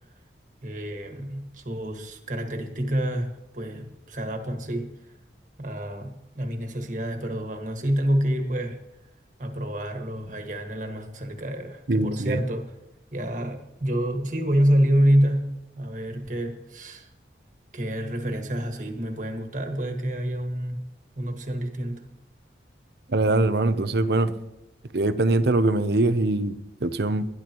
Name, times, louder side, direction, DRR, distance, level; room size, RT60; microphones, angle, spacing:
voice 1, 0.6-4.9 5.6-8.8 9.4-12.7 13.1-17.1 17.7-20.8 21.2-22.0, equal, 45° right, 4 dB, 1.8 m, -27 dB
voice 2, 11.9-12.4 23.1-24.3 24.9-27.3, right 2 dB, 60° right, 12 dB, 0.8 m, -23 dB
21.5 x 12.0 x 3.0 m, 0.88 s
head